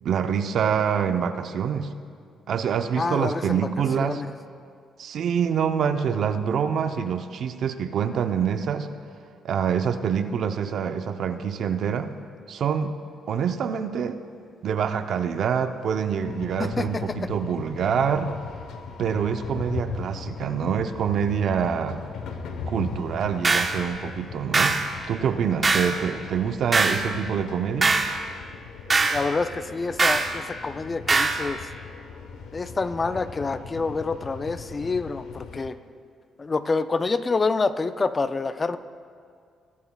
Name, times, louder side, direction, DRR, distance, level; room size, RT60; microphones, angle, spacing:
voice 1, 0.0-1.9 2.5-4.2 5.0-8.9 9.4-12.1 12.5-13.0 13.3-14.2 14.6-18.3 19.0-22.0 22.7-24.8 25.1-28.0, right 7 dB, 65° right, 8 dB, 0.6 m, -26 dB
voice 2, 3.0-3.7 4.0-4.3 16.6-17.3 29.1-31.7 32.5-35.8 36.4-38.8, left 3 dB, 30° left, 12 dB, 0.4 m, -27 dB
sound 1, 16.2-35.7, left 5 dB, 85° left, 0.9 m, -38 dB
sound 2, 23.4-23.8 24.5-24.9 25.6-26.0 26.7-27.0 27.8-28.1 28.9-29.2 30.0-30.3 31.1-31.4, right 3 dB, 30° right, 1.0 m, -21 dB
22.0 x 11.0 x 2.3 m, 2.2 s
cardioid pair, 90°, 0 cm